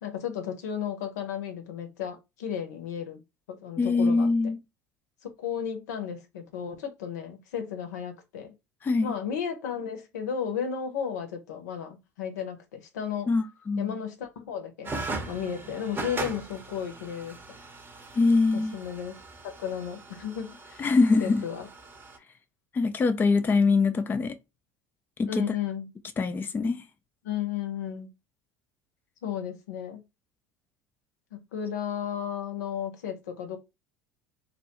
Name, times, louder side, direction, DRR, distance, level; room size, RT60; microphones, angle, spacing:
voice 1, 0.0-3.2 3.5-4.5 5.2-8.5 9.0-13.3 13.8-14.9 15.3-17.6 18.5-19.2 19.4-20.9 21.2-21.7 25.3-25.9 27.2-28.1 29.2-30.0 31.3-33.6, left 8 dB, 75° left, 0.6 m, -34 dB
voice 2, 3.8-4.6 8.8-9.1 13.3-14.0 18.2-18.7 20.8-21.4 22.7-24.3 25.2-25.6 26.2-26.8, left 3 dB, 20° left, 0.4 m, -23 dB
sound 1, 14.8-22.2, right 3 dB, 20° right, 0.7 m, -39 dB
2.2 x 2.2 x 2.9 m
figure-of-eight pair, 70°, 9 cm